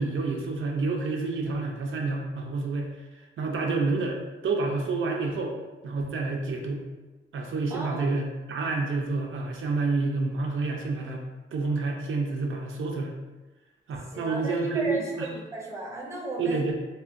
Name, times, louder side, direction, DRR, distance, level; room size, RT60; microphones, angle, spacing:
voice 1, 0.0-2.9 3.4-5.5 5.8-6.8 7.3-11.2 11.5-13.1 13.9-15.3 16.4-16.7, right 3 dB, 80° right, 1 dB, 0.4 m, -28 dB
voice 2, 7.7-8.1 14.1-16.6, right 1 dB, 15° right, -3 dB, 0.5 m, -35 dB
3.4 x 2.1 x 2.5 m, 1.2 s
wide cardioid pair, 140°, 20 cm